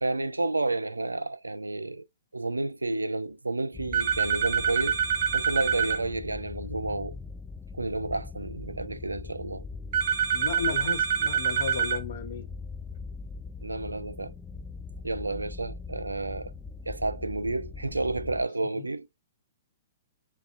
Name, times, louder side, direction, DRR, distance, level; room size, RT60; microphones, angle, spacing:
voice 1, 0.0-2.1 2.3-5.0 5.3-7.2 7.8-9.7 13.6-14.3 15.0-16.5 16.9-19.2, right 2 dB, 90° right, 0.3 m, -31 dB
sound 1, 3.7-18.4, left 4 dB, 10° left, 0.3 m, -41 dB
sound 2, 3.9-6.0 9.9-12.0, right 7 dB, 50° right, 0.9 m, -26 dB
voice 2, 10.3-12.5 15.3-15.5 18.7-18.9, left 6 dB, 55° left, 1.0 m, -34 dB
5.8 x 2.2 x 2.5 m
figure-of-eight pair, 115°, 0 cm